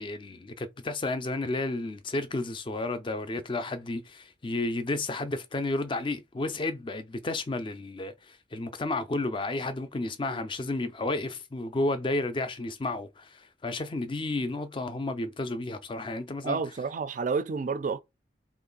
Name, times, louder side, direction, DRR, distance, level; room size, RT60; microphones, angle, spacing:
voice 1, 0.0-16.6, left 2 dB, 25° left, 0.4 m, -32 dB
voice 2, 16.4-18.0, right 4 dB, 45° right, 0.3 m, -30 dB
2.9 x 2.5 x 3.9 m
head